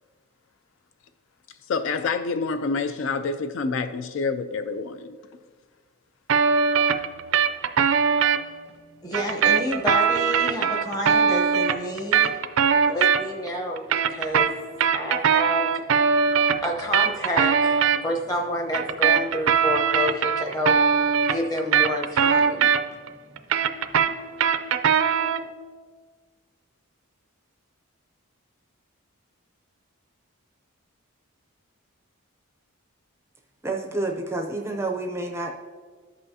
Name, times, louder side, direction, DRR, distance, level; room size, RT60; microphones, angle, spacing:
voice 1, 1.7-5.2, left 4 dB, 60° left, 0.3 m, -27 dB
sound 1, 6.3-8.4 9.1-13.5 13.8-18.0 18.7-23.1 23.4-25.5, right 7 dB, 65° right, 0.4 m, -21 dB
voice 2, 9.0-12.4 12.9-14.6 14.9-15.8 16.6-20.8 21.3-22.7, left 1 dB, 15° left, 0.8 m, -29 dB
voice 3, 33.6-35.5, right 2 dB, 10° right, 0.4 m, -29 dB
13.5 x 5.6 x 2.7 m
head